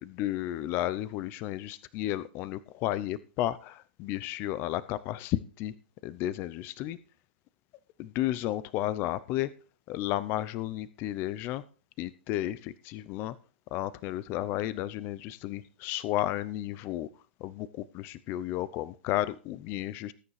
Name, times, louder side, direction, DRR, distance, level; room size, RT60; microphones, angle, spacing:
voice 1, 0.0-5.7 6.0-7.0 8.0-9.5 9.9-11.6 12.0-13.3 13.7-17.1 17.4-20.1, left 14 dB, 40° left, 16 dB, 0.6 m, -33 dB
19.5 x 9.6 x 3.2 m, 0.37 s
hypercardioid pair, 120°, 6 cm